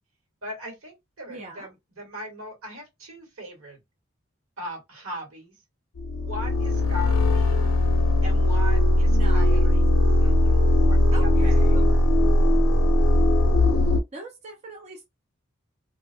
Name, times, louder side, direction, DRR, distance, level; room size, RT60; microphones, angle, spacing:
voice 1, 0.4-3.8 4.6-5.5 6.2-7.7 8.2-12.1, equal, 85° right, 1.3 m, -39 dB
voice 2, 1.3-1.7 9.1-9.7 11.1-11.8 14.1-15.0, right 2 dB, 30° right, 0.5 m, -40 dB
sound 1, 6.0-14.0, left 1 dB, 85° left, 0.4 m, -19 dB
2.4 x 2.1 x 2.5 m
head